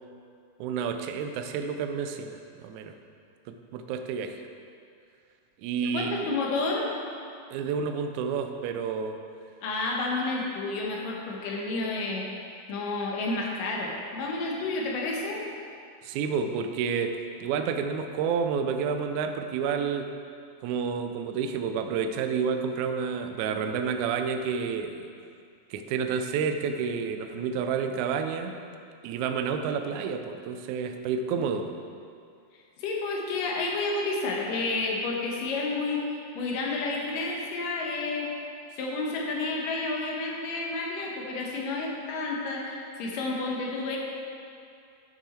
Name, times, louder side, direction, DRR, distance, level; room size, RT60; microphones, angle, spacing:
voice 1, 0.6-2.9 3.5-4.4 5.6-6.3 7.5-9.2 16.0-17.2 17.4-20.1 20.6-25.1 25.7-28.6 29.0-31.7, right 6 dB, 80° right, 6 dB, 1.7 m, -30 dB
voice 2, 5.8-6.9 9.6-12.2 12.7-15.5 32.8-38.3 38.7-44.0, left 3 dB, 80° left, -2 dB, 2.6 m, -30 dB
9.5 x 6.2 x 4.3 m, 2.4 s
omnidirectional pair, 3.9 m